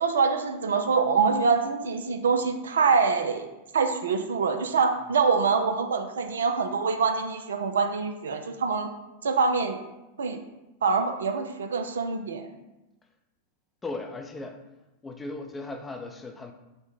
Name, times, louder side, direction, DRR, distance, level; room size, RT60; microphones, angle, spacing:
voice 1, 0.0-3.5 3.7-8.9 9.2-9.8 10.2-10.4 10.8-12.5, right 5 dB, 65° right, 6 dB, 0.3 m, -25 dB
voice 2, 13.8-14.6 15.0-16.5, left 2 dB, 15° left, 4 dB, 0.4 m, -37 dB
5.0 x 2.1 x 3.7 m, 0.98 s
figure-of-eight pair, 90°, 0 cm